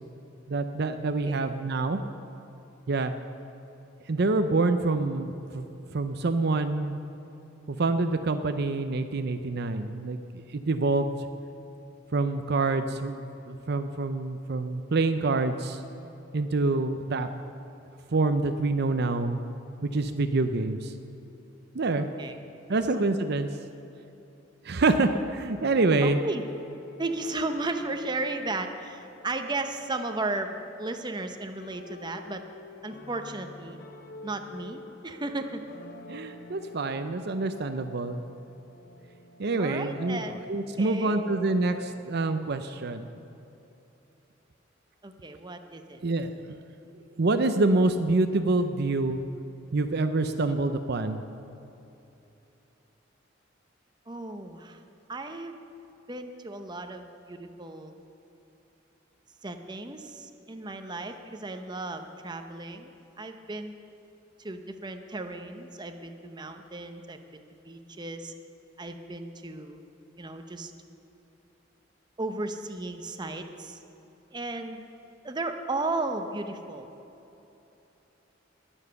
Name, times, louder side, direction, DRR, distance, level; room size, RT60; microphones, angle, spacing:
voice 1, 0.5-2.0 2.9-3.1 4.1-5.7 5.9-7.0 7.7-10.2 10.5-11.2 12.1-15.8 16.3-17.3 18.1-19.4 19.8-20.9 21.7-22.1 22.7-23.5 24.6-26.2 36.1-38.2 39.4-40.2 40.5-43.1 46.0-46.3 46.9-49.2 49.7-51.2, right 3 dB, 55° right, 8 dB, 0.6 m, -26 dB
voice 2, 22.0-22.3 22.7-22.8 26.0-26.4 27.0-32.4 32.8-33.8 34.2-35.6 39.6-40.5 40.8-41.2 45.0-46.0 54.1-54.8 55.1-55.6 56.1-57.9 59.4-62.9 63.2-63.7 64.4-68.3 68.8-69.8 70.2-70.7 72.2-73.8 74.3-74.8 75.2-76.9, right 2 dB, 25° right, 6 dB, 0.8 m, -35 dB
sound 1, 25.5-41.9, left 2 dB, 50° left, 1.0 m, -48 dB
20.5 x 7.3 x 6.8 m, 3.0 s
head